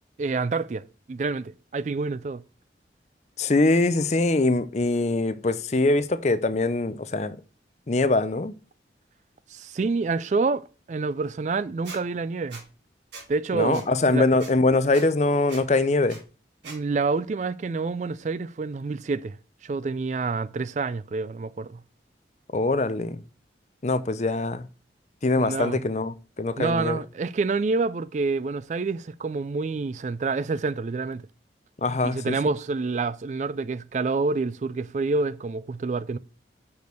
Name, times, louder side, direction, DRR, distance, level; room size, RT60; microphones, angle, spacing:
voice 1, 0.2-2.4 9.5-12.6 13.3-14.3 16.6-19.4 19.6-21.8 25.3-25.8 26.6-31.2 32.0-36.2, right 4 dB, 40° right, 0.3 m, -28 dB
voice 2, 3.4-7.4 7.9-8.5 13.5-16.2 22.5-23.2 23.8-24.7 25.2-27.0 31.8-32.3, left 2 dB, 40° left, 0.6 m, -23 dB
Squeak, 11.8-12.0 12.5-12.6 13.1-13.3 13.7-13.8 14.4-14.5 14.9-15.0 15.5-15.6 16.1-16.2 16.6-16.8, right 4 dB, 90° right, 2.7 m, -41 dB
6.1 x 5.2 x 6.7 m
head